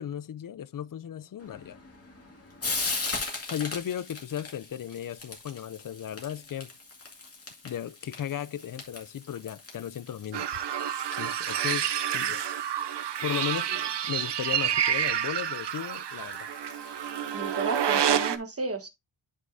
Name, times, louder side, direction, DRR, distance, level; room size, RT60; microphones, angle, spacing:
voice 1, 0.0-1.8 3.5-6.7 7.6-10.5 11.2-12.4 13.2-13.7 14.0-16.5, left 10 dB, 45° left, 0.4 m, -35 dB
Frying (food), 1.4-18.4, left 3 dB, 30° left, 2.1 m, -41 dB
sound 1, 10.3-18.4, right 9 dB, 60° right, 0.7 m, -29 dB
voice 2, 17.3-18.9, right 3 dB, 30° right, 1.3 m, -33 dB
9.6 x 5.5 x 2.6 m
wide cardioid pair, 130°, 48 cm